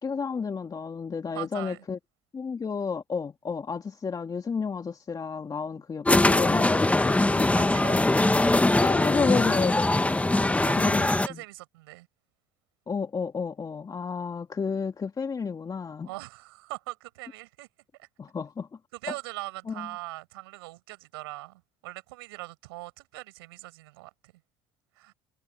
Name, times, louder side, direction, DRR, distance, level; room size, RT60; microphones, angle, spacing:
voice 1, 0.0-2.0 2.3-7.5 7.9-8.0 8.8-10.0 10.8-11.4 12.9-16.1 18.2-18.7 19.7-19.9, left 5 dB, 30° left, 2.3 m, -31 dB
voice 2, 1.3-1.8 7.4-8.0 10.5-12.1 16.1-17.7 18.0-18.1 18.9-24.1 24.9-25.1, right 21 dB, 85° right, 6.1 m, -41 dB
sound 1, 6.1-11.3, left 2 dB, 10° left, 1.3 m, -22 dB
hypercardioid pair, 65°, 12 cm